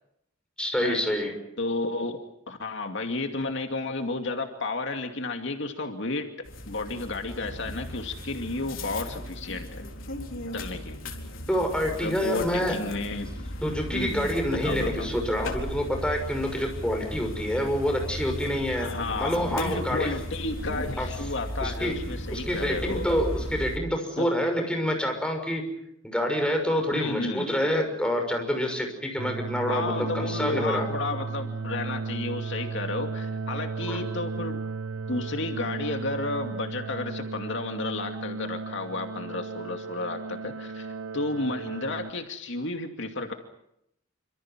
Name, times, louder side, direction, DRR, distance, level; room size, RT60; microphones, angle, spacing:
voice 1, 0.6-1.3 11.5-12.8 13.6-20.1 21.0-21.1 21.6-21.9 22.3-25.6 26.0-30.9 33.8-34.1, equal, 5° left, 4 dB, 6.2 m, -27 dB
voice 2, 1.6-2.2 2.5-6.3 6.7-9.8 10.5-11.1 12.0-13.5 13.9-15.2 18.8-23.1 24.2-24.3 26.9-27.5 29.7-34.6 35.1-43.3, left 2 dB, 65° left, 5 dB, 2.5 m, -32 dB
sound 1, 6.4-23.8, left 1 dB, 90° left, 4.3 m, -36 dB
sound 2, 29.2-42.1, right 4 dB, 70° right, 1.2 m, -35 dB
28.0 x 26.5 x 6.0 m, 0.78 s
head